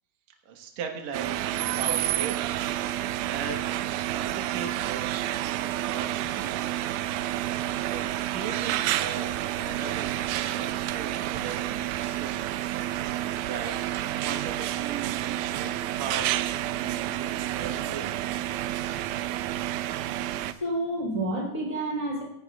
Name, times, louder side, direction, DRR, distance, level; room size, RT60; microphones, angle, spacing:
voice 1, 0.5-1.5 1.8-2.6 3.3-3.7 4.1-5.0 5.6-6.7 7.8-10.1 10.4-12.8 13.4-18.1, right 6 dB, 60° right, 2 dB, 2.4 m, -38 dB
sound 1, 1.1-20.5, right 13 dB, 80° right, 1.8 m, -29 dB
voice 2, 20.1-22.2, right 1 dB, 10° left, -1 dB, 2.5 m, -30 dB
17.0 x 16.5 x 2.4 m, 0.77 s
omnidirectional pair, 4.0 m